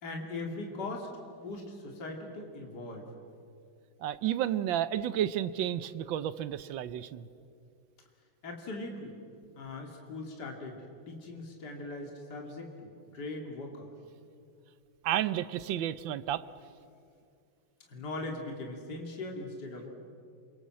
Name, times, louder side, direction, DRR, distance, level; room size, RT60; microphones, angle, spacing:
voice 1, 0.0-1.1 1.4-3.1 8.4-9.2 9.6-10.8 11.1-13.9 17.9-19.9, left 2 dB, 55° left, 1 dB, 3.0 m, -40 dB
voice 2, 4.0-7.3 15.0-16.5, right 11 dB, 75° right, 15 dB, 1.5 m, -31 dB
28.5 x 24.5 x 7.6 m, 2.4 s
omnidirectional pair, 2.2 m